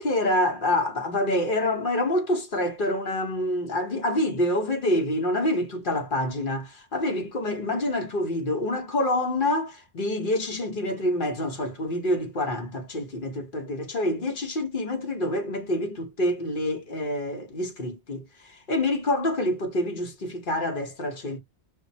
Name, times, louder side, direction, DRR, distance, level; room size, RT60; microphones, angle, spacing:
voice 1, 0.0-21.4, left 1 dB, 50° left, 1.1 m, -27 dB
5.6 x 2.0 x 2.6 m
omnidirectional pair, 1.2 m